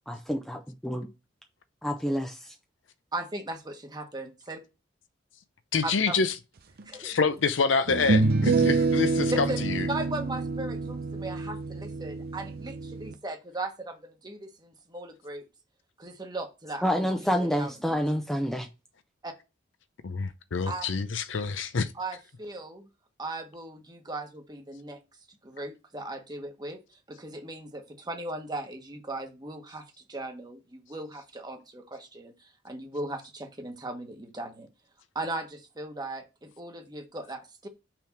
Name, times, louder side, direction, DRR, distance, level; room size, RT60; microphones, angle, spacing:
voice 1, 0.1-0.6 0.8-1.0 1.8-2.5 16.8-18.7, equal, ahead, 0.6 m, -28 dB
voice 2, 3.1-4.6 5.8-6.2 6.8-7.2 9.3-9.6 9.9-15.4 16.0-18.0 19.2-19.3 20.7-21.1 21.9-22.9 23.2-25.0 25.4-26.8 27.1-34.7 35.1-37.7, right 2 dB, 20° right, 1.2 m, -38 dB
voice 3, 5.7-6.3 7.0-9.9 20.0-21.9, left 4 dB, 75° left, 0.6 m, -27 dB
sound 1, 6.8-6.9 7.9-13.1, right 3 dB, 55° right, 0.6 m, -27 dB
5.8 x 3.5 x 5.9 m
head